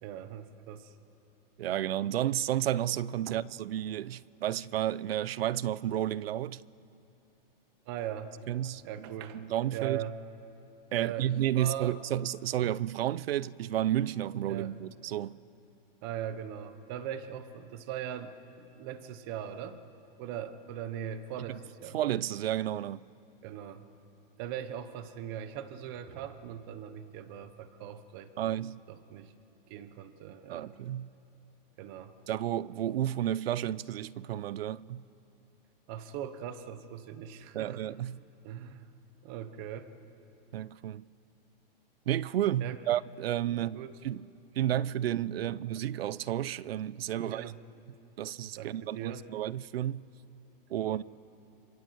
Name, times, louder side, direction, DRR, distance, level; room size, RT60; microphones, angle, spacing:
voice 1, 0.0-0.9 3.3-3.4 7.9-8.3 8.8-9.4 9.7-10.2 11.0-12.0 14.5-14.7 16.0-19.8 20.2-22.0 23.4-23.8 24.4-28.5 28.9-29.3 29.7-30.8 31.8-32.1 35.9-37.8 38.4-38.9 39.2-39.9 42.6-42.8 43.5-43.9 45.5-45.6 47.2-47.6 48.6-49.3 50.8-51.0, right 9 dB, 25° right, 0.9 m, -40 dB
voice 2, 1.6-6.6 8.5-10.0 10.9-15.4 21.5-21.6 21.9-23.0 28.4-28.8 30.5-31.1 32.3-35.0 37.5-38.2 40.5-41.0 42.1-44.3 44.5-47.5 48.2-50.0 50.7-51.0, right 12 dB, 90° right, 0.7 m, -32 dB
28.0 x 25.5 x 8.0 m
supercardioid pair, 180°, 29 cm